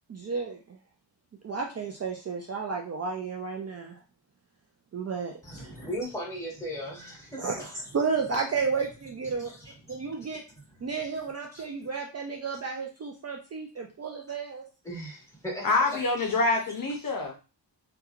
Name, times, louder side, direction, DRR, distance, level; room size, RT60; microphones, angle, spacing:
voice 1, 0.1-0.8 1.4-4.0 4.9-5.7 7.4-7.5 7.9-9.5 9.9-10.4 10.8-14.6, right 5 dB, 35° right, 1 dB, 0.4 m, -32 dB
voice 2, 5.4-7.7 9.3-10.1 10.5-10.9 11.5-11.6 14.8-16.4 16.7-16.8, equal, 5° left, -5 dB, 1.4 m, -39 dB
voice 3, 15.6-17.4, left 3 dB, 50° left, 1 dB, 0.6 m, -26 dB
2.8 x 2.3 x 2.4 m, 0.32 s
wide cardioid pair, 100°, 44 cm